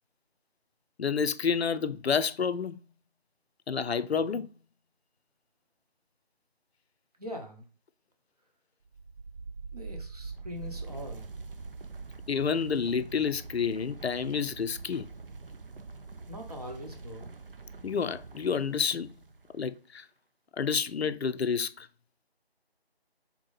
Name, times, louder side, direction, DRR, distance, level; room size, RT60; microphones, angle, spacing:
voice 1, 1.0-2.8 3.7-4.5 12.3-15.1 17.8-19.1 19.5-20.1 20.6-21.9, left 6 dB, 80° left, 0.5 m, -29 dB
voice 2, 7.2-7.7 9.7-11.3 16.3-17.3, equal, 40° right, 0.9 m, -42 dB
sound 1, 8.8-19.7, right 4 dB, 60° right, 0.5 m, -44 dB
3.6 x 2.9 x 3.9 m
figure-of-eight pair, 160°, 31 cm